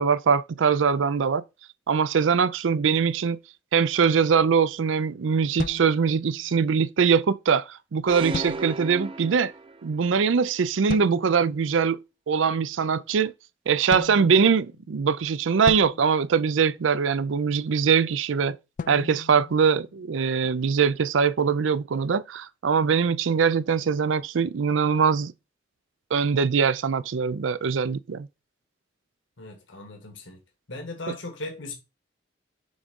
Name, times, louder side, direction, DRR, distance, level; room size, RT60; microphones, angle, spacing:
voice 1, 0.0-1.4 1.9-3.4 3.7-9.5 9.8-12.0 12.3-13.3 13.7-18.6 18.9-25.3 26.1-28.3, right 6 dB, 85° right, 0.5 m, -22 dB
sound 1, 5.6-6.7 8.3-9.1 10.9-11.6 13.9-15.0 15.7-17.1 18.8-20.3, left 5 dB, 45° left, 0.3 m, -37 dB
sound 2, 8.1-10.1, right 3 dB, 30° right, 0.5 m, -34 dB
voice 2, 29.4-30.4 30.7-31.7, left 2 dB, 80° left, 1.7 m, -37 dB
6.2 x 3.6 x 5.2 m
head